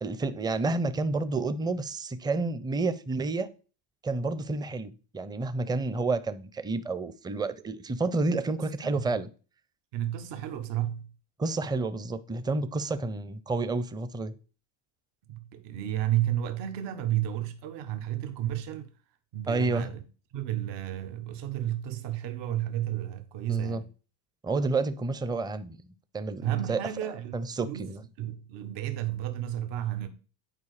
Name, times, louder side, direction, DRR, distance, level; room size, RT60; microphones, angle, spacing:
voice 1, 0.0-3.5 4.0-9.3 11.4-14.3 19.5-19.9 23.5-23.8 24.4-25.8 26.1-26.8 27.3-28.0, right 3 dB, 10° right, 0.5 m, -30 dB
voice 2, 8.6-9.1 9.9-11.1 15.3-18.9 19.3-20.0 20.3-23.9 26.4-30.1, right 12 dB, 70° right, 1.3 m, -32 dB
9.9 x 4.6 x 4.9 m
cardioid pair, 120°, 44 cm